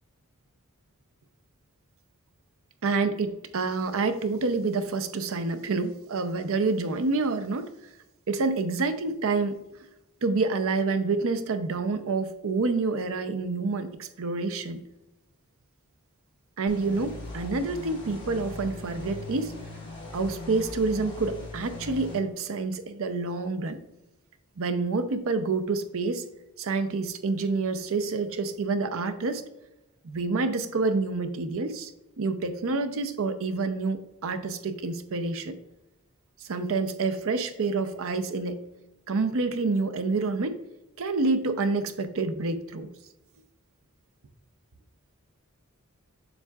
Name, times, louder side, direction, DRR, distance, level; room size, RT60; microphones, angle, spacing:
voice 1, 2.8-7.7 8.3-9.6 10.2-14.8 16.6-19.5 20.1-23.8 24.6-26.2 26.6-29.4 30.0-31.9 32.2-35.6 36.5-38.6 39.1-40.5 41.0-42.9, right 3 dB, 65° right, 9 dB, 0.6 m, -28 dB
sound 1, 16.7-22.2, left 2 dB, 25° left, 1.8 m, -39 dB
7.1 x 6.6 x 2.4 m, 0.94 s
head